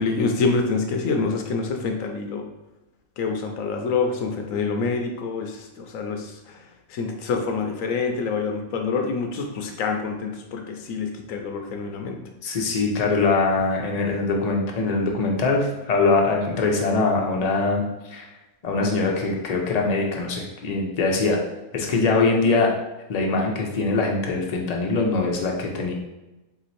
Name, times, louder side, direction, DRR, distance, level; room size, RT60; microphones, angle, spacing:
voice 1, 0.0-2.5 3.2-6.6 6.9-12.2, left 4 dB, 75° left, 4 dB, 1.0 m, -26 dB
voice 2, 12.4-18.2 18.6-21.4 21.7-22.7 23.1-25.9, left 3 dB, 40° left, 0 dB, 0.6 m, -22 dB
3.8 x 3.0 x 4.2 m, 1.0 s
omnidirectional pair, 1.4 m